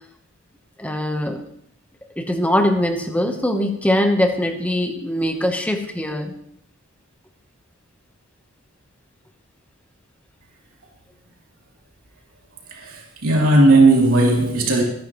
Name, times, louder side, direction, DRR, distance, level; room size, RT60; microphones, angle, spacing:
voice 1, 0.8-1.4 2.2-6.4, left 1 dB, 5° left, 5 dB, 1.1 m, -22 dB
voice 2, 12.7-14.8, right 2 dB, 85° right, -2 dB, 3.1 m, -16 dB
24.5 x 10.5 x 3.1 m, 0.69 s
head